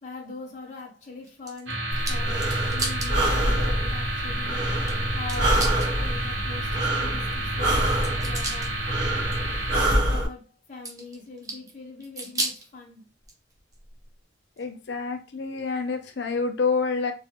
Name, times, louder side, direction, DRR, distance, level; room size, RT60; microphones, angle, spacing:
voice 1, 0.0-4.6 5.1-8.7 10.0-13.0, left 3 dB, 40° left, 0.8 m, -42 dB
sound 1, 1.2-3.1 3.6-3.7 4.9-5.0 5.3-5.9 7.8-8.7 9.2-9.4 10.8-11.7 12.0-12.7 13.2-14.1 14.6-14.7 15.6-15.7, right 2 dB, 20° right, 0.5 m, -33 dB
sound 2, 1.7-9.8, right 1 dB, 85° right, 1.1 m, -30 dB
Breathing, 1.9-10.3, right 1 dB, 65° right, 0.9 m, -26 dB
voice 2, 14.6-17.1, left 4 dB, 65° left, 0.5 m, -27 dB
3.1 x 2.2 x 2.8 m
head